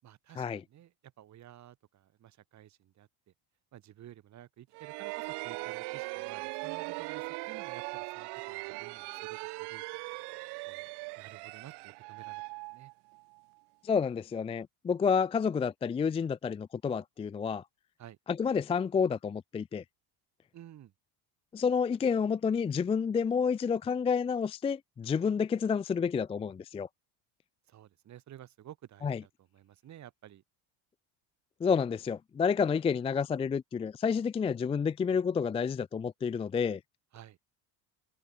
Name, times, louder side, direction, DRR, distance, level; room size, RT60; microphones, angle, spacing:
voice 1, 0.0-3.1 3.7-9.8 10.7-10.9 11.2-12.4 12.7-12.9 18.0-18.2 20.5-20.9 27.7-30.4 37.1-37.4, right 12 dB, 40° right, 7.8 m, -53 dB
sound 1, 4.7-13.4, right 27 dB, 70° right, 1.9 m, -40 dB
voice 2, 13.8-17.6 18.3-19.8 21.5-26.9 29.0-29.2 31.6-36.8, left 6 dB, 15° left, 0.4 m, -29 dB
cardioid pair, 150°, 41 cm